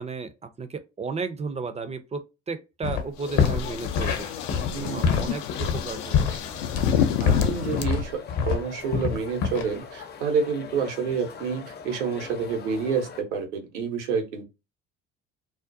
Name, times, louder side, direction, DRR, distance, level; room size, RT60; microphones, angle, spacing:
voice 1, 0.0-6.3, right 4 dB, 20° right, 0.5 m, -34 dB
sound 1, 2.8-3.0 3.3-8.6 8.9-9.6, left 6 dB, 55° left, 0.9 m, -25 dB
sound 2, 3.2-7.8, left 9 dB, 70° left, 0.5 m, -29 dB
sound 3, 4.7-13.2, left 6 dB, 30° left, 0.6 m, -42 dB
voice 2, 4.7-5.3 7.2-8.2 8.5-14.5, right 5 dB, 80° right, 0.9 m, -28 dB
2.4 x 2.1 x 2.5 m
hypercardioid pair, 60°, 34 cm